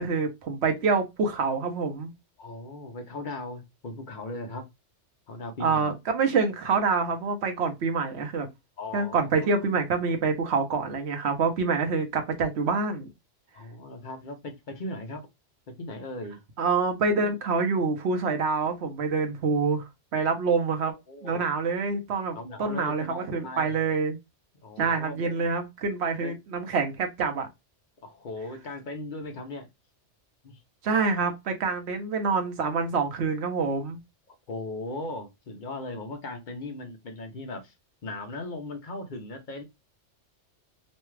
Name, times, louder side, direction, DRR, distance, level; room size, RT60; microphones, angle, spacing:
voice 1, 0.0-2.1 5.6-8.5 8.9-13.1 16.6-20.9 21.2-24.2 24.8-27.5 30.8-34.0, right 4 dB, 65° right, 1.0 m, -26 dB
voice 2, 2.4-4.7 5.3-5.9 8.8-9.3 13.5-15.3 15.8-16.4 21.1-21.5 22.3-23.8 24.6-25.4 26.2-26.3 28.0-29.7 30.4-30.6 34.3-37.7 38.0-39.6, left 2 dB, 50° left, 0.7 m, -38 dB
3.1 x 2.3 x 3.1 m
omnidirectional pair, 1.2 m